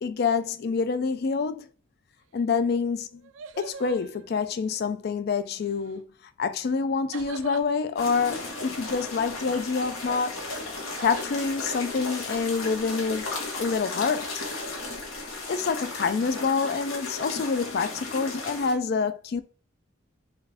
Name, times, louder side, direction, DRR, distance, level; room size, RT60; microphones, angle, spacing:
voice 1, 0.0-1.7 2.3-3.2 3.6-6.1 6.4-10.3 11.0-13.3 13.6-14.4 15.5-19.4, left 5 dB, 50° left, 0.3 m, -27 dB
sound 1, 3.1-4.9 5.6-6.0 7.1-7.7 11.0-11.5, right 6 dB, 70° right, 0.4 m, -44 dB
sound 2, 8.0-18.7, left 2 dB, 85° left, 1.3 m, -35 dB
4.4 x 2.5 x 3.4 m
head